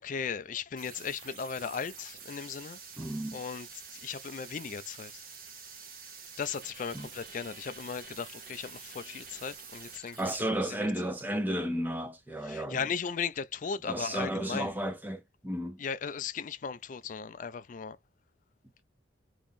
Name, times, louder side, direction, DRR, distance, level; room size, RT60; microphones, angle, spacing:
voice 1, 0.0-2.8 3.3-3.7 3.9-5.2 6.4-10.3 10.7-10.9 12.4-14.7 15.8-18.0, left 6 dB, 45° left, 0.3 m, -37 dB
sound 1, 0.8-10.4, right 6 dB, 50° right, 0.8 m, -48 dB
voice 2, 3.0-3.4 6.9-7.1 10.2-12.9 13.9-15.8, right 1 dB, 10° right, 0.6 m, -33 dB
2.9 x 2.5 x 3.6 m
head